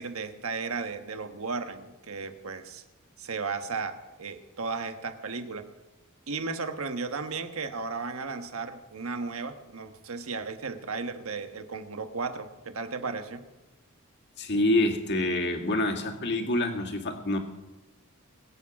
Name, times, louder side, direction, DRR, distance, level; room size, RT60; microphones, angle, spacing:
voice 1, 0.0-2.8 3.2-5.7 6.3-13.4, right 4 dB, 70° right, 8 dB, 1.3 m, -35 dB
voice 2, 14.4-17.4, left 1 dB, 55° left, 2 dB, 2.0 m, -26 dB
21.5 x 8.8 x 6.0 m, 1.1 s
head